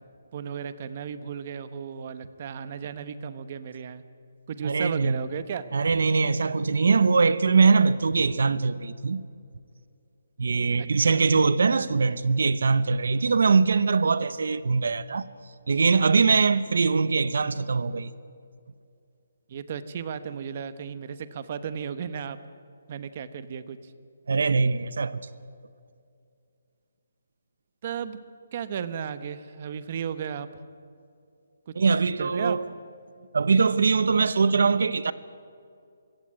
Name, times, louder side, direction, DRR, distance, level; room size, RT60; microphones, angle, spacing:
voice 1, 0.3-4.0 4.5-5.7 10.8-11.2 19.5-22.4 22.9-23.9 27.8-28.2 28.5-30.5 31.7-31.8 32.2-32.6, right 7 dB, 30° right, 1.0 m, -34 dB
voice 2, 4.6-5.2 5.7-9.2 10.4-15.3 15.7-18.1 24.3-25.2 31.7-32.6 33.3-35.1, right 4 dB, 65° right, 0.8 m, -22 dB
25.5 x 15.5 x 9.8 m
hypercardioid pair, 175°, 0 cm